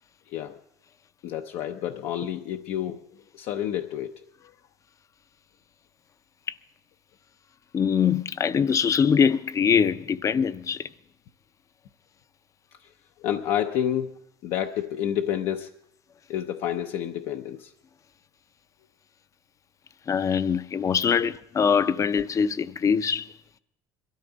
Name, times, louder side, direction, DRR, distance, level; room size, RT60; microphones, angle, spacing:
voice 1, 1.2-3.0 3.3-4.2 13.2-14.2 14.4-15.7 16.3-17.7 21.1-21.3, left 10 dB, 70° left, 0.7 m, -29 dB
voice 2, 7.7-10.9 20.1-23.3, left 7 dB, 30° left, 0.5 m, -23 dB
22.5 x 13.0 x 3.9 m
cardioid pair, 125°, 11 cm